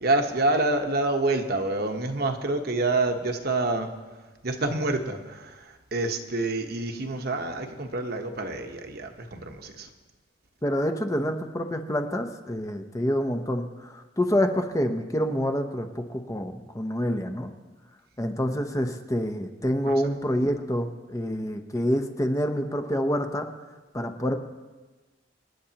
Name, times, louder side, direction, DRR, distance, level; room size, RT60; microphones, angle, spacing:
voice 1, 0.0-3.9 4.4-5.4 5.9-9.9 19.9-20.0, right 2 dB, 55° right, 5 dB, 1.1 m, -27 dB
voice 2, 10.6-17.5 18.2-23.5 23.9-24.4, equal, 15° left, 5 dB, 0.7 m, -27 dB
27.0 x 10.0 x 2.9 m, 1.2 s
head